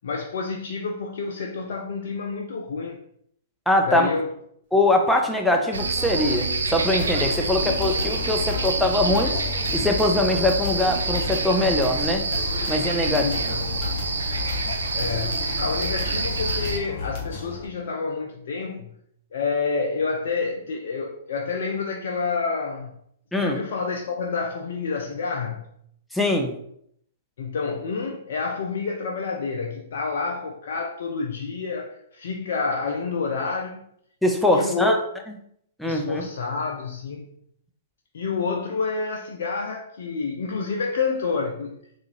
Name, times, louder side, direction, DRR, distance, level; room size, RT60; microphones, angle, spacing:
voice 1, 0.0-3.0 3.9-4.3 13.0-13.8 14.9-18.9 19.3-22.9 23.4-25.7 27.4-33.9 34.5-35.0 35.9-37.3 38.1-42.0, left 4 dB, 65° left, 2 dB, 0.4 m, -29 dB
voice 2, 3.7-4.1 4.7-9.3 9.7-12.2 12.7-13.3 23.3-23.6 26.1-26.6 34.2-35.0 35.8-36.3, left 1 dB, ahead, 2 dB, 0.5 m, -22 dB
Human voice, 5.1-12.5 13.1-14.5, right 4 dB, 50° right, 0.7 m, -40 dB
sound 1, 5.7-16.8, right 2 dB, 80° right, 0.5 m, -27 dB
sound 2, 7.0-17.7, left 4 dB, 40° left, 1.2 m, -33 dB
3.7 x 2.4 x 2.9 m, 0.70 s
hypercardioid pair, 120°, 0 cm